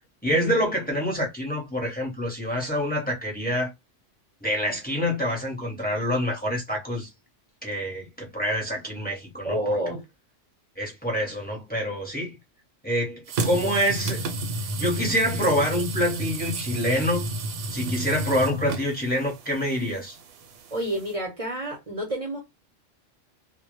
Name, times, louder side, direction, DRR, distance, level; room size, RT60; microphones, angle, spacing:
voice 1, 0.2-3.7 4.4-7.1 7.6-9.8 10.8-12.4 12.8-14.2 14.8-17.3 17.7-20.2, equal, 10° left, 0.6 m, -26 dB
voice 2, 9.4-10.0 20.7-22.4, right 1 dB, 40° right, 0.5 m, -29 dB
sound 1, 13.3-21.1, right 2 dB, 80° right, 0.9 m, -31 dB
2.1 x 2.0 x 2.9 m
omnidirectional pair, 1.3 m